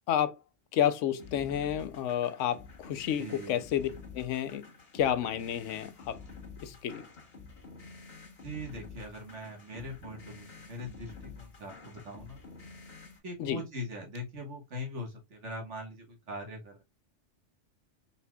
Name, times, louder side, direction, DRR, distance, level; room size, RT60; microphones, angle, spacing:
voice 1, 0.7-4.7 4.9-6.2 6.6-7.0 13.4-13.6, left 10 dB, 85° left, 0.9 m, -30 dB
sound 1, 1.2-13.2, left 4 dB, 55° left, 1.6 m, -49 dB
voice 2, 3.2-3.9 8.4-12.4 13.2-16.8, left 1 dB, 70° right, 1.8 m, -41 dB
4.2 x 4.1 x 2.2 m
omnidirectional pair, 1.2 m